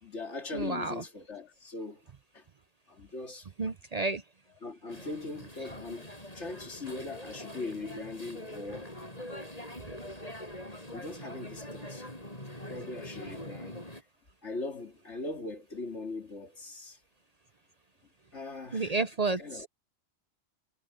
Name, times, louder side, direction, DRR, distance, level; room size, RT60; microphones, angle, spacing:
voice 1, 0.0-2.0 2.3-2.4 2.9-3.7 4.6-6.1 6.3-8.9 10.9-12.0 12.7-13.8 14.4-17.0 18.3-19.0 19.4-19.7, left 3 dB, 80° left, 3.1 m, -40 dB
voice 2, 0.5-0.9 3.6-4.2 18.7-19.7, right 3 dB, 40° right, 0.7 m, -31 dB
sound 1, 4.9-14.0, left 1 dB, 35° left, 8.2 m, -43 dB
omnidirectional pair, 1.2 m